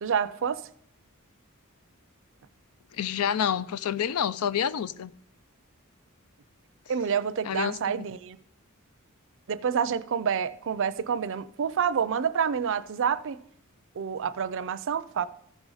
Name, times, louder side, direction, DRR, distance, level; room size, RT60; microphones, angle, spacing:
voice 1, 0.0-0.6 6.9-8.4 9.5-13.4 14.0-15.3, right 7 dB, 60° right, 0.5 m, -28 dB
voice 2, 2.9-5.1 7.4-8.0, left 8 dB, 80° left, 0.4 m, -28 dB
14.0 x 5.4 x 4.8 m
head